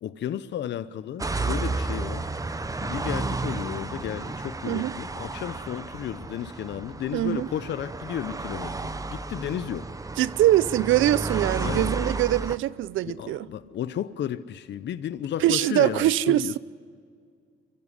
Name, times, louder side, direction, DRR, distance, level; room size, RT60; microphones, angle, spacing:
voice 1, 0.0-2.3 2.8-9.9 11.6-11.9 13.0-16.5, left 10 dB, 65° left, 0.8 m, -33 dB
sound 1, 1.2-12.6, right 3 dB, 15° right, 1.0 m, -32 dB
voice 2, 7.1-7.5 10.2-13.5 15.4-16.6, right 14 dB, 80° right, 0.6 m, -23 dB
23.5 x 15.0 x 9.9 m
cardioid pair, 90°, 20 cm